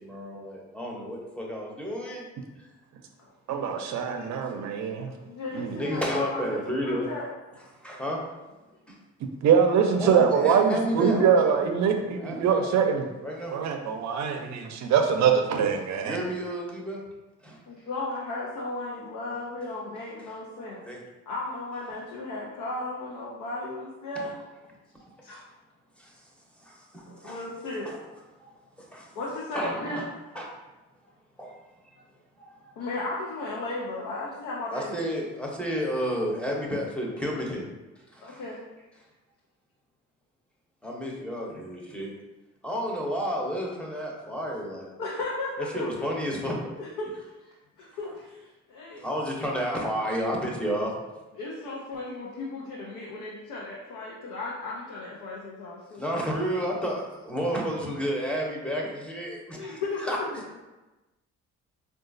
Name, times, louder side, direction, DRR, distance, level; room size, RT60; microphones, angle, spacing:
voice 1, 0.0-2.3 2.6-2.7 5.7-7.1 7.8-8.2 8.9-9.0 10.0-12.7 13.2-13.5 16.0-17.0 17.4-17.6 20.9-21.0 26.0-26.1 26.6-27.4 27.8-28.0 28.4-29.1 29.5-30.1 30.3-30.5 31.4-31.5 32.4-32.7 34.7-37.6 38.1-38.4 40.8-42.1 42.6-44.9 45.7-46.6 47.0-47.1 48.0-48.1 49.0-50.9 56.0-60.2, equal, 5° left, -2 dB, 0.7 m, -31 dB
voice 2, 3.5-5.1 5.6-5.8 9.4-13.0 13.5-16.2, right 6 dB, 65° right, 5 dB, 0.5 m, -23 dB
voice 3, 5.2-7.3 17.7-20.8 21.3-24.3 25.2-25.4 27.1-27.9 29.2-30.0 32.8-35.0 38.2-38.6 45.0-45.9 46.7-49.0 51.4-56.0 59.6-60.4, left 2 dB, 90° left, -5 dB, 0.6 m, -35 dB
3.8 x 2.4 x 2.5 m, 1.1 s
cardioid pair, 90°, 30 cm